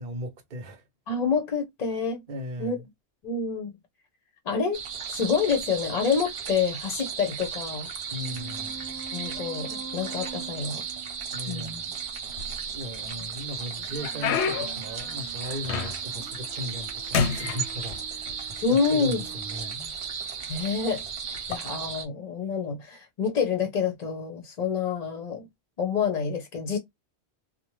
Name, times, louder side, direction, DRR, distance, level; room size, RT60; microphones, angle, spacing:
voice 1, 0.0-0.9 2.3-2.9 8.1-8.9 11.3-11.9 12.7-19.9, left 1 dB, 50° right, 0.9 m, -37 dB
voice 2, 1.1-2.2 2.6-2.8 3.2-3.7 4.5-4.8 5.1-7.9 9.1-10.8 11.5-11.8 18.6-19.2 20.5-21.0 21.5-25.5 25.8-26.8, left 6 dB, 45° left, 0.6 m, -27 dB
sound 1, 4.7-22.0, right 6 dB, 80° right, 1.1 m, -35 dB
sound 2, 8.2-12.7 13.9-19.8, right 5 dB, 25° right, 0.4 m, -46 dB
sound 3, 12.3-13.0 13.5-16.2 16.6-16.9 17.1-18.4 19.2-19.3 20.0-20.2 21.4-21.6, left 6 dB, 90° left, 0.9 m, -30 dB
2.7 x 2.1 x 3.0 m
omnidirectional pair, 1.1 m